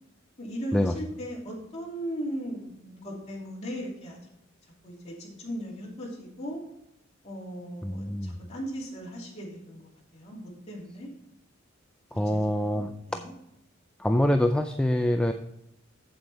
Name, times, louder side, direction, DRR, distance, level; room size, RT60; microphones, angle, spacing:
voice 1, 0.4-4.2 4.8-6.6 7.2-11.1 12.3-12.4 12.7-12.8 13.1-13.3, equal, 30° left, -4 dB, 2.8 m, -37 dB
voice 2, 7.8-8.4 12.1-13.2 14.0-15.3, left 1 dB, 5° left, 6 dB, 0.3 m, -25 dB
8.0 x 7.7 x 4.1 m, 0.83 s
head